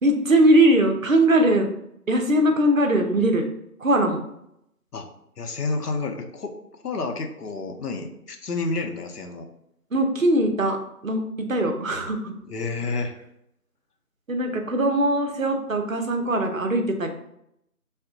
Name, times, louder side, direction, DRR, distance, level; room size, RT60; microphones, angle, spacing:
voice 1, 0.0-1.7 2.1-3.5 3.8-4.2 9.9-10.8 11.0-12.3 14.3-17.1, right 1 dB, 60° right, 4 dB, 0.5 m, -20 dB
voice 2, 5.4-9.5 12.5-13.2, left 3 dB, 80° left, 5 dB, 0.6 m, -30 dB
3.5 x 2.1 x 2.6 m, 0.78 s
figure-of-eight pair, 175°, 46 cm